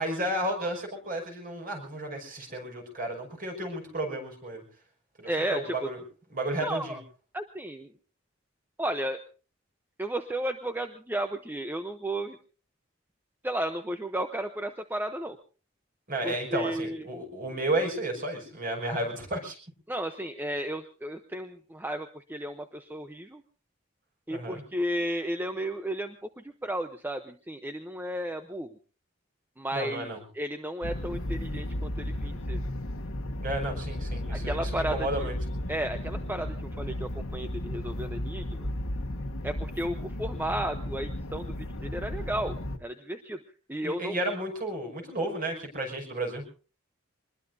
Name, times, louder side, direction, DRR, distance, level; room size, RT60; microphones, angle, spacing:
voice 1, 0.0-4.6 5.2-6.0 6.3-7.0 16.1-19.6 24.3-24.6 29.7-30.2 33.4-35.3 43.8-46.5, right 1 dB, 45° right, 2 dB, 5.8 m, -32 dB
voice 2, 5.2-5.9 6.6-7.0 7.3-7.9 8.8-9.2 10.0-12.4 13.4-15.4 16.2-17.1 19.9-23.4 24.3-28.7 29.6-30.1 30.3-32.6 34.3-35.3 35.7-38.7 39.4-43.4 43.7-44.1, right 1 dB, 10° right, 7 dB, 0.8 m, -33 dB
sound 1, 30.8-42.8, left 1 dB, 85° left, 1.6 m, -34 dB
24.5 x 21.0 x 2.7 m, 0.37 s
head